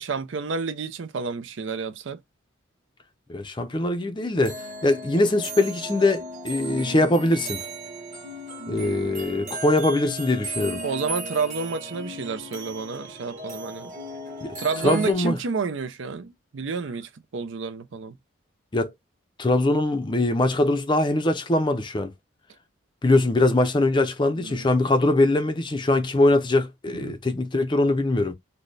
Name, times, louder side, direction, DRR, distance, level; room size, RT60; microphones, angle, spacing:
voice 1, 0.0-2.2 10.8-13.9 14.6-18.2 24.4-24.7 27.0-27.2, right 5 dB, 70° right, 0.5 m, -30 dB
voice 2, 3.3-7.6 8.7-10.8 14.4-14.6 14.8-15.4 18.7-18.9 19.4-22.1 23.0-28.3, left 2 dB, 25° left, 0.5 m, -22 dB
sound 1, 4.3-15.1, right 1 dB, 35° right, 1.4 m, -36 dB
4.1 x 2.1 x 3.2 m
head